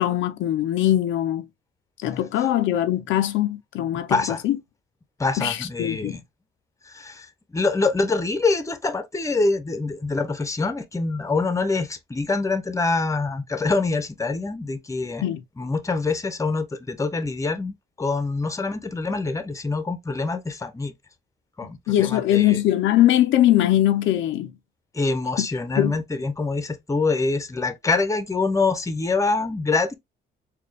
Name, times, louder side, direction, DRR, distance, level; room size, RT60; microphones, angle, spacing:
voice 1, 0.0-1.5 2.0-4.6 5.4-6.2 15.2-15.4 21.6-24.5 25.4-25.5 25.8-26.0, left 13 dB, 80° left, 0.5 m, -21 dB
voice 2, 4.1-4.4 5.2-6.2 6.9-15.3 15.6-20.9 21.6-22.6 24.9-29.9, left 3 dB, 15° left, 0.7 m, -25 dB
4.2 x 2.3 x 3.2 m
cardioid pair, 90°, 20 cm